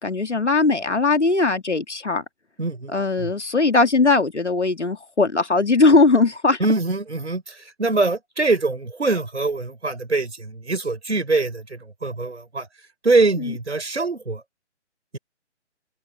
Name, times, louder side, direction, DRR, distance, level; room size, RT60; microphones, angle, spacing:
voice 1, 0.0-2.2 2.9-6.6 13.4-13.5, left 3 dB, 75° left, 2.2 m, -19 dB
voice 2, 2.6-3.3 6.6-12.7 13.0-14.4, right 3 dB, 70° right, 5.1 m, -23 dB
open air
figure-of-eight pair, 140°, 35 cm